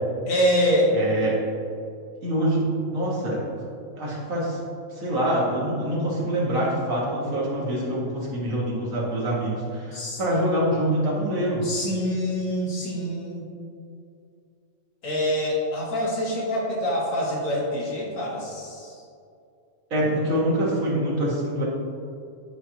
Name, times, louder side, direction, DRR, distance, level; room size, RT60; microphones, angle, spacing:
voice 1, 0.3-1.0 9.9-10.2 11.6-13.5 15.0-19.0, equal, 75° left, -3 dB, 1.7 m, -25 dB
voice 2, 0.9-1.4 2.2-3.4 4.0-4.6 4.9-11.7 19.9-21.6, right 1 dB, 80° right, -5 dB, 1.9 m, -25 dB
9.8 x 4.4 x 2.8 m, 2.4 s
omnidirectional pair, 1.4 m